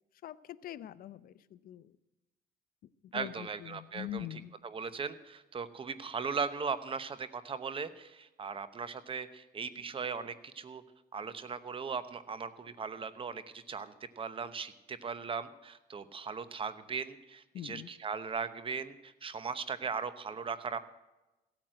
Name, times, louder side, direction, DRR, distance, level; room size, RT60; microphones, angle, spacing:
voice 1, 0.2-2.0 2.8-4.5 17.5-17.9, left 12 dB, 60° left, 17 dB, 0.6 m, -44 dB
voice 2, 3.1-4.3 4.6-10.8 11.1-20.8, right 5 dB, 30° right, 13 dB, 1.0 m, -38 dB
16.0 x 9.0 x 7.7 m, 1.0 s
cardioid pair, 110°, 17 cm